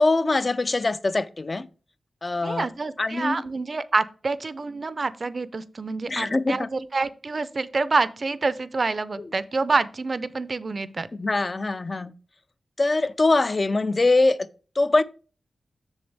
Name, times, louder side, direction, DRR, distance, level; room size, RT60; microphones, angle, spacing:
voice 1, 0.0-1.7 2.2-2.7 3.0-3.4 6.1-6.7 11.2-12.1 12.8-14.5 14.8-15.0, left 2 dB, 35° left, 0.4 m, -22 dB
voice 2, 2.4-11.1, right 3 dB, 45° right, 0.5 m, -27 dB
7.0 x 6.7 x 3.4 m
wide cardioid pair, 115°, 0 cm